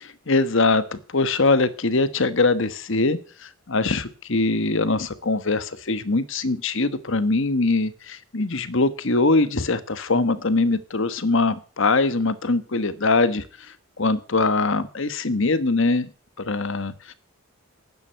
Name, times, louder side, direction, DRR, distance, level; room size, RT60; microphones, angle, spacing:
voice 1, 0.3-16.1 16.4-17.1, left 3 dB, 60° left, 14 dB, 1.2 m, -22 dB
11.5 x 9.7 x 8.2 m, 0.39 s
head